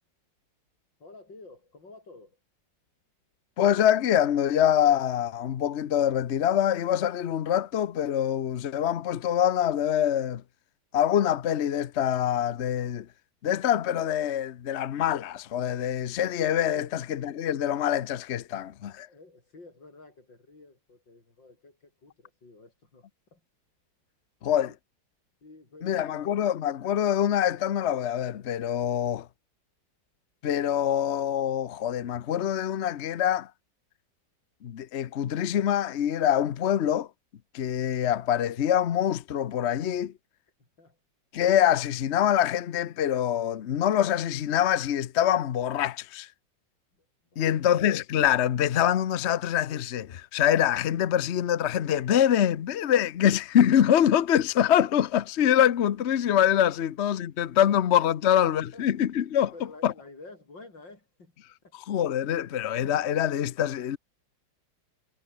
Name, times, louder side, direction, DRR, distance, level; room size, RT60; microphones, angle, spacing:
voice 1, 1.0-2.4 16.7-16.9 19.1-23.4 24.7-24.8 25.4-26.3 40.6-41.0 46.9-47.8 58.2-58.3 58.7-58.9 59.5-61.4 61.6-61.8, left 3 dB, 75° left, 6.5 m, -51 dB
voice 2, 3.6-10.4 10.9-13.1 13.4-19.1 24.4-24.7 25.8-29.3 30.4-33.5 34.6-37.1 37.5-40.1 41.3-46.3 47.4-59.5 59.8-59.9 61.9-64.0, left 10 dB, 55° left, 0.8 m, -25 dB
omnidirectional pair, 2.0 m